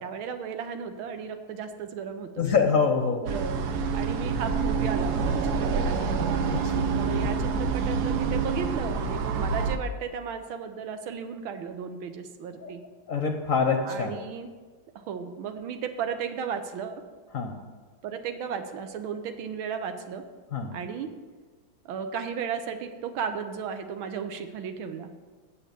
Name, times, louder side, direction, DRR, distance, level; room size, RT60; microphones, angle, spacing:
voice 1, 0.0-2.5 3.2-6.1 7.0-12.8 13.9-14.5 14.9-17.0 18.0-20.2 20.7-21.1 21.8-25.1, right 7 dB, 85° right, 8 dB, 1.7 m, -35 dB
voice 2, 2.4-3.3 6.5-6.9 12.5-12.7 13.1-14.2 17.3-17.6 20.5-20.8, left 5 dB, 55° left, 4 dB, 0.9 m, -25 dB
sound 1, 3.3-9.8, right 5 dB, 65° right, 1.1 m, -27 dB
8.3 x 7.5 x 6.8 m, 1.4 s
omnidirectional pair, 2.2 m